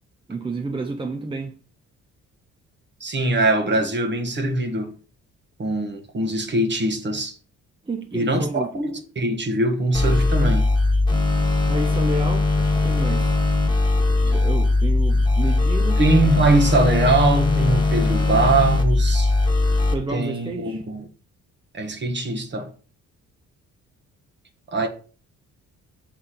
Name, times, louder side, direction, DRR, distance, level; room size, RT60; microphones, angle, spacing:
voice 1, 0.3-1.6 7.8-8.7 11.6-12.5 12.8-13.4 14.2-16.0 19.9-20.8, right 2 dB, 15° right, 0.7 m, -30 dB
voice 2, 3.0-4.9 5.6-7.3 8.1-10.7 14.3-14.4 16.0-19.3 20.1-21.1 21.7-22.7 24.7-24.9, right 2 dB, 35° right, 1.5 m, -22 dB
sound 1, 9.9-19.9, left 2 dB, 15° left, 1.8 m, -20 dB
6.7 x 3.5 x 5.8 m
cardioid pair, 90°, 30 cm